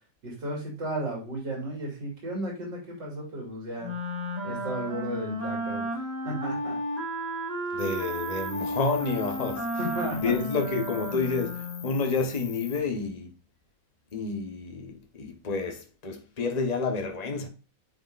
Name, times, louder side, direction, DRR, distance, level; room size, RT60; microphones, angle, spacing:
voice 1, 0.2-3.9 4.4-6.8 9.8-10.8, right 1 dB, 75° right, 3.5 m, -34 dB
Wind instrument woodwind instrument, 3.8-12.0, equal, 20° right, 2.0 m, -33 dB
voice 2, 7.7-9.7 10.2-13.3 14.1-17.5, left 4 dB, 25° left, 1.1 m, -29 dB
Cricket, 7.8-12.8, left 8 dB, 85° left, 1.7 m, -45 dB
9.3 x 5.1 x 2.5 m
omnidirectional pair, 1.9 m